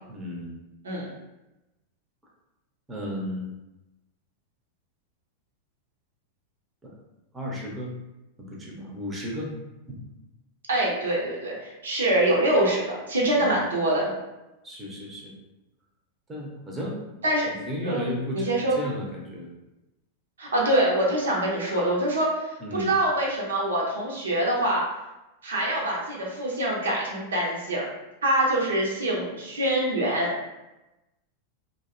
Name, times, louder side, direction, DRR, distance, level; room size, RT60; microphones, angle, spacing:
voice 1, 0.1-0.5 2.9-3.5 6.8-7.0 7.3-7.9 8.4-9.5 9.9-10.0 13.4-13.6 14.6-15.3 16.3-17.0 17.5-19.5 22.6-22.9, left 1 dB, 15° right, -3 dB, 0.6 m, -34 dB
voice 2, 10.7-14.1 17.2-17.5 17.8-18.8 20.4-24.8 25.4-27.8 28.2-30.3, right 1 dB, 70° right, -3 dB, 0.5 m, -25 dB
2.5 x 2.1 x 2.4 m, 0.99 s
figure-of-eight pair, 90°, 0 cm